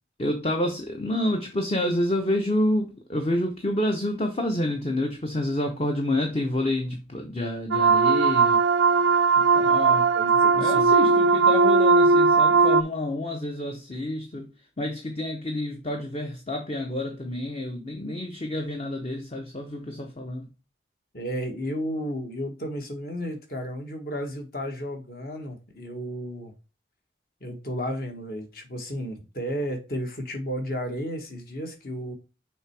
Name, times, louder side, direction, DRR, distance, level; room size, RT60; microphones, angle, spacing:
voice 1, 0.2-8.6 9.4-10.1 10.6-20.5, left 1 dB, 30° left, 0.8 m, -28 dB
sound 1, 7.7-12.8, right 4 dB, 90° right, 0.5 m, -19 dB
voice 2, 10.1-10.9 21.1-26.5 27.4-32.1, equal, 50° left, 1.6 m, -33 dB
6.3 x 3.4 x 4.6 m
head